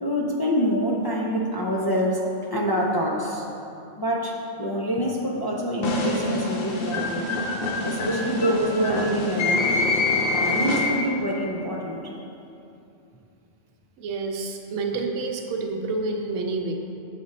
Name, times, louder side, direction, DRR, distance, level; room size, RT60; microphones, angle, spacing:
voice 1, 0.0-2.2 2.5-3.4 4.0-7.2 7.8-9.7 10.2-12.0, equal, 40° left, -4 dB, 0.3 m, -26 dB
sound 1, 5.8-11.3, left 2 dB, 55° left, 0.8 m, -25 dB
voice 2, 14.0-16.7, right 3 dB, 85° right, 3 dB, 1.0 m, -28 dB
7.5 x 5.0 x 4.1 m, 2.8 s
omnidirectional pair, 1.3 m